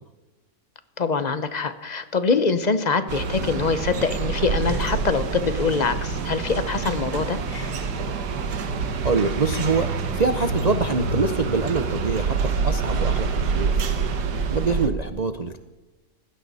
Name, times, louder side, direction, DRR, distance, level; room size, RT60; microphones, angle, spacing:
voice 1, 1.0-7.7, left 4 dB, 35° left, 11 dB, 0.8 m, -24 dB
sound 1, 3.1-14.9, right 5 dB, 90° right, 1.8 m, -26 dB
voice 2, 9.0-13.8 14.5-15.6, right 4 dB, 50° right, 8 dB, 0.5 m, -25 dB
19.0 x 16.0 x 4.1 m, 1.1 s
omnidirectional pair, 1.7 m